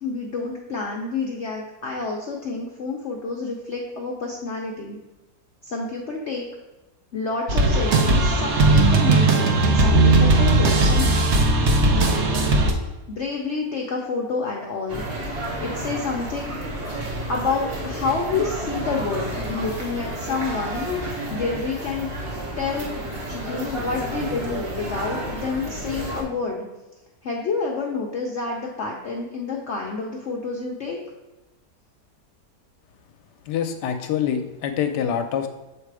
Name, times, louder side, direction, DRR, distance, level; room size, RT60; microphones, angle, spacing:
voice 1, 0.0-5.0 5.6-6.5 7.1-11.2 11.6-12.0 12.3-12.4 13.1-15.0 15.6-16.6 17.3-20.9 21.3-22.1 22.6-23.0 23.3-26.7 27.2-31.0, left 4 dB, 55° left, -1 dB, 0.8 m, -28 dB
sound 1, 7.5-12.7, right 2 dB, 55° right, 0.8 m, -17 dB
sound 2, 14.9-26.2, right 1 dB, 35° right, 1.4 m, -31 dB
voice 2, 33.5-35.5, left 8 dB, 80° left, 8 dB, 1.2 m, -25 dB
7.5 x 3.2 x 4.7 m, 1.1 s
omnidirectional pair, 1.8 m